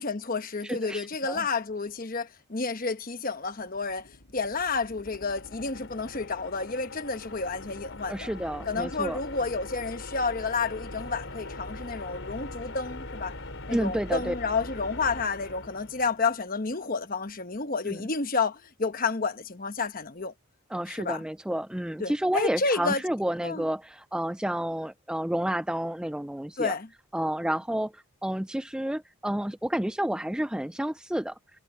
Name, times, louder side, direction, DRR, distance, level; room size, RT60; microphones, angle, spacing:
voice 1, 0.0-8.3 8.6-13.4 13.7-20.3 20.9-21.2 22.0-23.0 23.4-23.6 26.6-26.9, left 4 dB, 40° left, 1.1 m, -30 dB
voice 2, 0.6-1.4 8.1-9.2 13.7-14.3 17.9-18.0 20.7-26.8 27.1-31.4, right 1 dB, 5° right, 0.3 m, -30 dB
sound 1, 3.4-16.5, left 2 dB, 60° left, 5.0 m, -42 dB
head